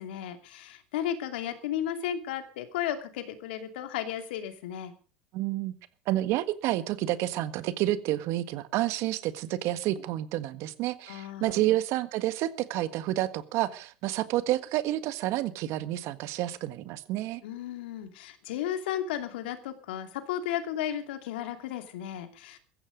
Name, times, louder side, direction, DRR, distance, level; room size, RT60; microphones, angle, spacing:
voice 1, 0.0-4.9 11.1-11.7 17.4-22.6, left 10 dB, 80° left, 8 dB, 2.7 m, -34 dB
voice 2, 5.3-5.7 6.1-17.4, right 15 dB, 60° right, 13 dB, 1.6 m, -29 dB
16.0 x 14.0 x 5.2 m, 0.37 s
supercardioid pair, 100°, 5 cm